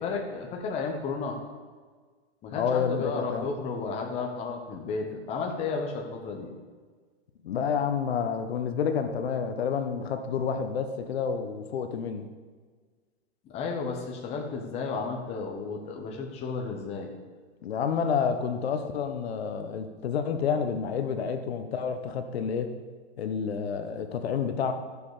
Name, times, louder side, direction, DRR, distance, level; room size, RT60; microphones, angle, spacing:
voice 1, 0.0-1.4 2.4-6.5 13.4-17.1, left 4 dB, 20° left, 1 dB, 1.1 m, -33 dB
voice 2, 2.5-3.5 7.4-12.3 17.6-22.7 23.2-24.7, left 6 dB, 65° left, 7 dB, 1.2 m, -29 dB
13.0 x 6.9 x 5.0 m, 1.5 s
hypercardioid pair, 155°, 33 cm